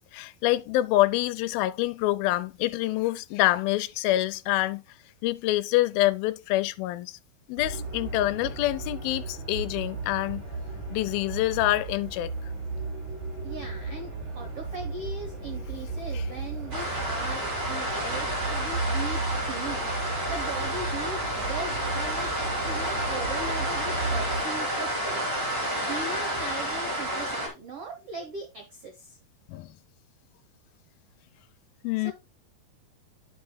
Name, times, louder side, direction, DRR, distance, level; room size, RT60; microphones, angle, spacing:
voice 1, 0.1-4.8 5.2-7.2 7.5-10.4 10.9-12.3 16.1-16.2 18.0-18.1 26.1-26.2 29.5-29.8 31.8-32.1, left 16 dB, 80° left, 2.2 m, -26 dB
sound 1, 7.6-24.4, right 3 dB, 50° right, 4.1 m, -35 dB
voice 2, 13.4-19.8 20.3-22.3 22.6-25.3 25.9-29.2 32.0-32.1, right 3 dB, 75° right, 1.3 m, -39 dB
sound 2, 16.7-27.5, right 1 dB, 30° right, 1.9 m, -30 dB
10.5 x 5.6 x 2.2 m
omnidirectional pair, 4.4 m